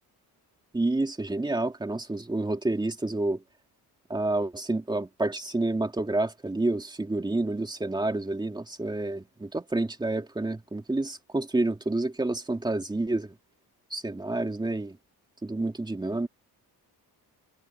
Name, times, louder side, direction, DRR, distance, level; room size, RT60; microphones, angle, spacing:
voice 1, 0.7-3.4 4.1-13.3 13.9-15.0 15.4-16.3, right 2 dB, 10° right, 2.7 m, -29 dB
cardioid pair, 150°, 39 cm